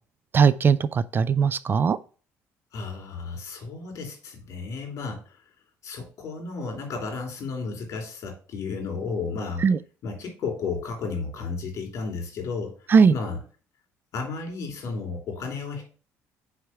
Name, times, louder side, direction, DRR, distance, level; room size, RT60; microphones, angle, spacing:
voice 1, 0.3-2.0 9.6-9.8 12.9-13.1, right 6 dB, 35° right, 0.4 m, -19 dB
voice 2, 2.7-5.4 5.8-9.7 10.0-12.7 13.1-13.4 14.1-15.8, left 4 dB, 60° left, 2.9 m, -33 dB
4.9 x 4.7 x 5.7 m
cardioid pair, 90°, 6 cm